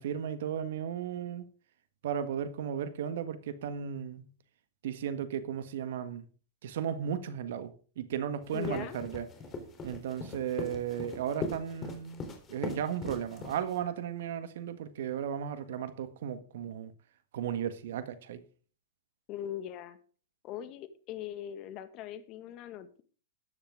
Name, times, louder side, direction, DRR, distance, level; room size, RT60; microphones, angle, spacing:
voice 1, 0.0-1.4 2.0-4.3 4.8-6.3 6.6-9.3 9.8-16.9 17.3-18.4, right 8 dB, 65° right, 1.6 m, -35 dB
sound 1, 8.4-13.8, left 3 dB, 25° left, 3.7 m, -40 dB
voice 2, 8.5-9.0 19.3-20.0 20.4-23.0, left 10 dB, 40° left, 1.8 m, -40 dB
14.0 x 10.5 x 3.8 m
hypercardioid pair, 100°, 0 cm